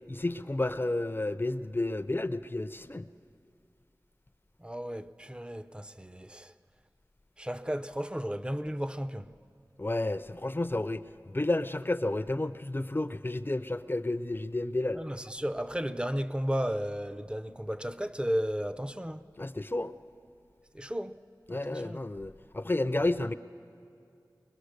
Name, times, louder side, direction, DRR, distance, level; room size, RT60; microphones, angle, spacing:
voice 1, 0.1-3.1 9.8-15.0 19.4-19.9 21.5-23.3, left 2 dB, 30° left, 0.5 m, -31 dB
voice 2, 4.6-6.5 7.4-9.3 14.9-19.3 20.7-21.2 21.5-22.0, equal, 15° right, 0.6 m, -34 dB
22.0 x 22.0 x 6.6 m
wide cardioid pair, 55°, 7 cm